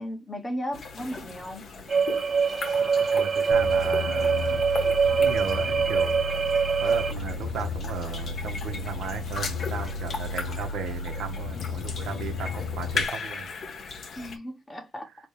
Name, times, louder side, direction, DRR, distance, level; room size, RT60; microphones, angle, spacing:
voice 1, 0.0-1.7 14.1-15.1, equal, 20° left, 1.3 m, -35 dB
sound 1, 0.7-14.4, left 4 dB, 50° left, 1.4 m, -38 dB
sound 2, 1.9-7.1, right 5 dB, 35° right, 0.3 m, -24 dB
voice 2, 2.8-6.2 6.8-13.5, right 7 dB, 65° right, 1.0 m, -36 dB
sound 3, 3.5-13.0, left 4 dB, 75° left, 0.7 m, -34 dB
4.2 x 3.1 x 3.3 m
supercardioid pair, 80°, 0 cm